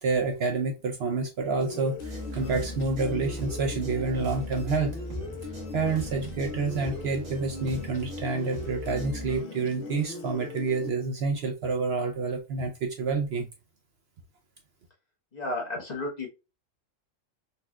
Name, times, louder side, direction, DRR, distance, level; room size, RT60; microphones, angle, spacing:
voice 1, 0.0-4.9 5.7-13.5, right 4 dB, 65° right, 0.7 m, -28 dB
sound 1, 1.6-10.9, left 3 dB, 60° left, 0.6 m, -40 dB
sound 2, 2.0-9.4, equal, 85° right, 1.5 m, -39 dB
voice 2, 15.3-16.3, left 2 dB, 35° left, 0.9 m, -32 dB
4.2 x 2.2 x 2.2 m
omnidirectional pair, 1.4 m